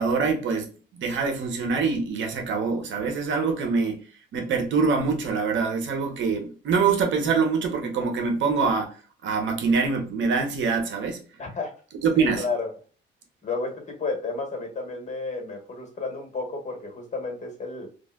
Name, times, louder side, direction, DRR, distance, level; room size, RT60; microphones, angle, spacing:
voice 1, 0.0-4.0 4.3-9.0 9.2-11.2 12.0-12.4, right 5 dB, 75° right, 0.8 m, -24 dB
voice 2, 11.4-11.8 12.1-12.7 13.4-17.9, left 3 dB, 35° left, 1.4 m, -32 dB
3.1 x 2.6 x 2.4 m
cardioid pair, 90°, 20 cm